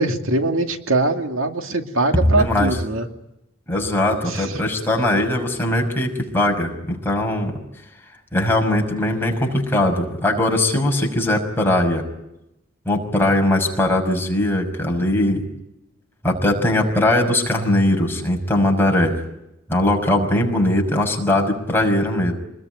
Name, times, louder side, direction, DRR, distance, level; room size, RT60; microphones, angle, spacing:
voice 1, 0.0-3.1 4.3-4.6, right 2 dB, 90° right, 5 dB, 2.4 m, -22 dB
voice 2, 2.2-2.8 3.7-7.5 8.3-12.0 12.9-15.5 16.2-19.2 19.7-22.3, left 1 dB, 10° left, 1 dB, 5.6 m, -20 dB
26.5 x 21.0 x 9.3 m, 0.88 s
head